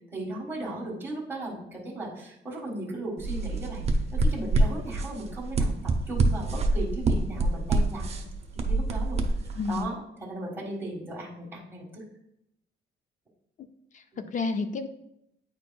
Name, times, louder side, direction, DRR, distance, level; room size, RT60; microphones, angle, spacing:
voice 1, 0.1-3.8 4.1-5.7 6.1-8.2 8.5-9.2 9.7-12.0 14.1-14.2, right 1 dB, 10° right, -4 dB, 1.5 m, -36 dB
sound 1, 3.2-9.8, right 2 dB, 35° right, 0.6 m, -26 dB
voice 2, 9.6-9.9 13.9-14.9, left 4 dB, 40° left, 9 dB, 0.4 m, -30 dB
9.1 x 4.6 x 2.3 m, 0.81 s
cardioid pair, 150°, 19 cm